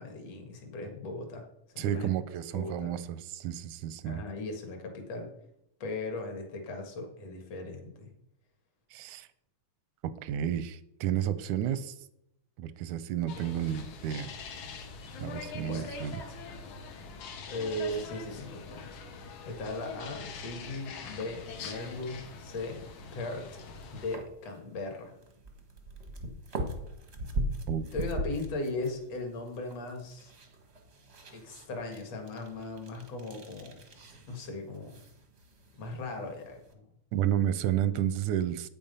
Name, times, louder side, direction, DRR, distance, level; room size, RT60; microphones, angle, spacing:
voice 1, 0.0-1.4 1.7-2.1 2.5-2.9 4.0-5.3 5.8-8.1 15.6-15.9 17.5-19.0 19.5-22.8 23.1-23.5 23.9-25.1 27.9-30.4 31.3-33.8 34.3-35.0 35.7-36.9, left 2 dB, 60° left, 3 dB, 2.7 m, -38 dB
voice 2, 1.8-4.2 8.9-9.3 10.0-12.0 12.6-14.3 15.2-16.2 27.7-27.8 37.1-38.7, right 10 dB, 85° right, 14 dB, 2.1 m, -31 dB
sound 1, 13.3-24.2, left 4 dB, 85° left, 2.6 m, -43 dB
sound 2, 21.4-36.7, right 1 dB, 60° right, 0.7 m, -41 dB
8.8 x 7.2 x 5.4 m, 0.79 s
omnidirectional pair, 3.4 m